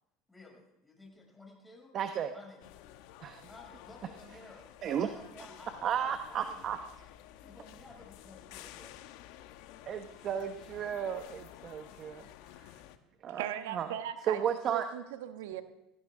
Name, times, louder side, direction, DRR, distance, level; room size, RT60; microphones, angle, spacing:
voice 1, 0.3-2.0 2.3-2.7 3.5-6.9 7.3-9.0 11.6-12.0, left 2 dB, 10° left, -1 dB, 6.7 m, -55 dB
voice 2, 1.9-2.3 3.2-3.4 4.8-5.1 5.8-6.8 9.9-12.2 13.2-13.9 14.3-14.9, right 8 dB, 45° right, 8 dB, 1.0 m, -34 dB
sound 1, 2.6-13.0, left 12 dB, 75° left, 1.1 m, -52 dB
voice 3, 13.3-14.4 14.7-15.6, right 11 dB, 85° right, 9 dB, 1.2 m, -38 dB
19.0 x 15.5 x 3.8 m, 0.84 s
supercardioid pair, 95°, 0 cm